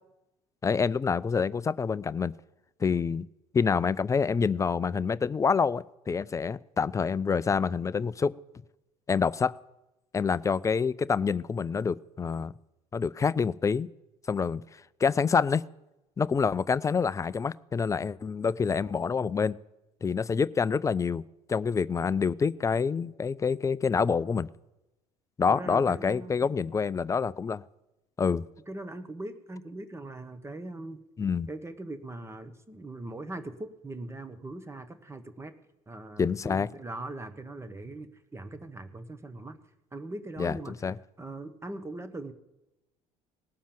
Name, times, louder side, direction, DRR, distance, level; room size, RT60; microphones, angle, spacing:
voice 1, 0.6-2.3 2.8-3.3 3.5-8.3 9.1-9.6 10.1-12.5 12.9-13.9 14.3-14.6 15.0-15.6 16.2-19.6 20.0-21.2 21.5-24.5 25.4-27.6 28.2-28.4 31.2-31.5 36.2-36.7 40.4-41.0, left 5 dB, 15° left, 0.4 m, -27 dB
voice 2, 25.5-26.3 28.7-31.0 31.5-35.5 35.9-39.6 39.9-40.7 41.2-42.3, right 2 dB, 15° right, 1.3 m, -40 dB
18.0 x 7.3 x 8.7 m
figure-of-eight pair, 60°, 19 cm